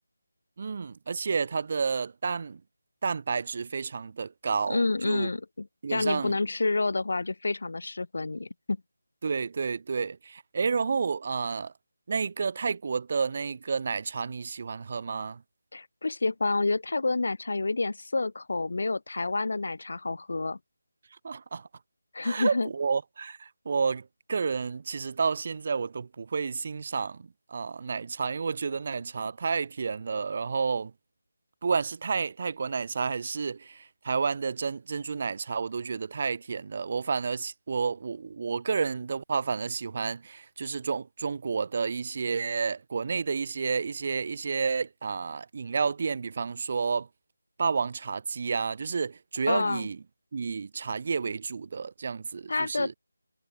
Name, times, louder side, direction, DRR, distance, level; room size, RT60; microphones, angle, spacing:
voice 1, 0.6-2.6 3.0-5.3 5.8-6.4 9.2-11.7 12.1-15.4 21.2-21.7 22.2-30.9 31.6-47.1 47.6-50.0 50.3-52.9, right 5 dB, 40° right, 0.9 m, -30 dB
voice 2, 4.7-8.8 15.7-20.6 22.1-22.7 49.5-49.9 52.5-53.0, left 3 dB, 60° left, 1.3 m, -29 dB
figure-of-eight pair, 170°, 0 cm